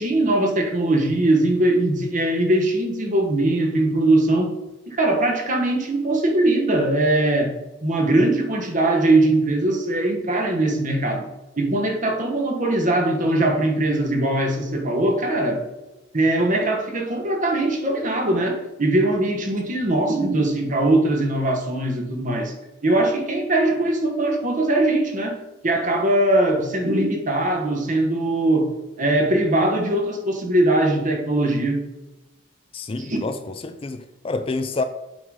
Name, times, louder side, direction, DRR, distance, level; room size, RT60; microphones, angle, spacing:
voice 1, 0.0-4.5 4.9-7.5 7.8-11.2 11.6-15.6 16.1-22.5 22.8-25.4 25.6-28.7 29.0-31.8 33.1-33.2, right 1 dB, 40° right, 3 dB, 1.2 m, -21 dB
voice 2, 32.7-34.8, left 3 dB, 30° left, 9 dB, 0.4 m, -28 dB
7.8 x 3.8 x 4.8 m, 1.0 s
head